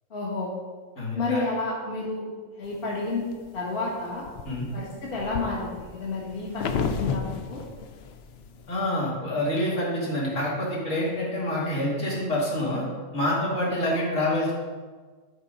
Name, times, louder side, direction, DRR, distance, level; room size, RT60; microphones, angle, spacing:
voice 1, 0.1-0.5 1.1-3.3 3.5-4.3 4.7-7.6, left 3 dB, 45° left, -4 dB, 1.5 m, -30 dB
voice 2, 1.0-1.4 4.4-4.7 8.7-12.8 13.1-14.5, left 1 dB, 80° left, -6 dB, 2.6 m, -27 dB
sound 1, 2.8-3.5 4.0-8.8, left 5 dB, 65° left, 0.8 m, -33 dB
11.0 x 3.7 x 5.1 m, 1.5 s
omnidirectional pair, 1.3 m